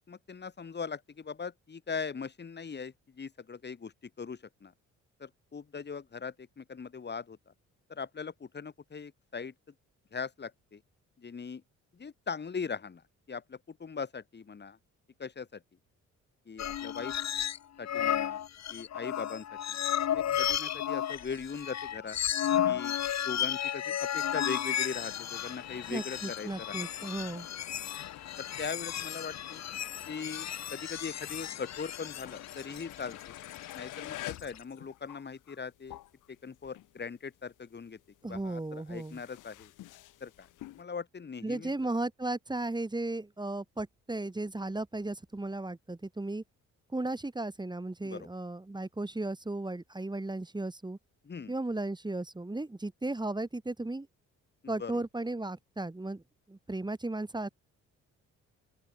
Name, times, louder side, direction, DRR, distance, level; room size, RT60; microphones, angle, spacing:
voice 1, 0.1-3.9 4.2-4.7 5.2-7.5 7.9-9.5 10.1-10.8 11.2-11.6 11.9-13.0 13.3-14.8 15.2-15.6 16.5-17.1 17.8-18.4 18.7-19.8 20.1-22.2 22.6-23.0 23.2-26.8 28.4-29.6 30.1-33.3 33.7-36.0 36.4-39.7 40.2-40.5 40.8-41.7 48.0-48.3 51.2-51.5 54.6-55.0, left 5 dB, 35° left, 3.4 m, -40 dB
sound 1, 16.6-17.6 17.9-34.6, left 10 dB, 60° left, 2.3 m, -33 dB
sound 2, 24.9-37.1 37.4-40.8, left 15 dB, 90° left, 7.0 m, -48 dB
voice 2, 25.9-27.5 38.2-39.2 41.4-46.4 46.9-51.0 51.5-54.1 54.7-56.2 56.5-57.5, right 2 dB, 15° right, 4.9 m, -35 dB
open air
cardioid pair, 90°, 30 cm